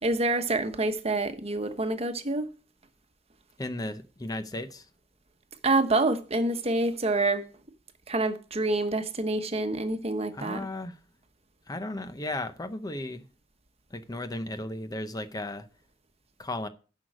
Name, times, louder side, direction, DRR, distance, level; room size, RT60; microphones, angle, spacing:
voice 1, 0.0-2.5 5.6-7.4 8.1-10.7, right 2 dB, 35° right, 1.1 m, -27 dB
voice 2, 3.6-4.9 10.3-11.0 11.7-13.2 13.9-15.7 16.4-16.7, left 1 dB, 20° left, 0.7 m, -35 dB
10.5 x 6.3 x 6.1 m
head